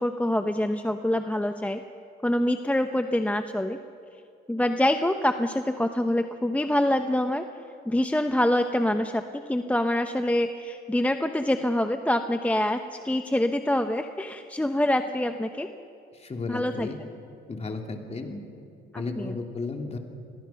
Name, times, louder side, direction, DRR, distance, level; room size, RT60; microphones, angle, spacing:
voice 1, 0.0-1.8 2.2-3.8 4.5-7.4 7.9-15.7 16.5-16.9 18.9-19.3, left 1 dB, 5° left, 7 dB, 0.9 m, -25 dB
voice 2, 16.1-17.0 17.5-18.4 18.9-20.0, left 3 dB, 35° left, 3 dB, 3.1 m, -34 dB
29.5 x 22.0 x 5.9 m, 2.5 s
cardioid pair, 90°, 20 cm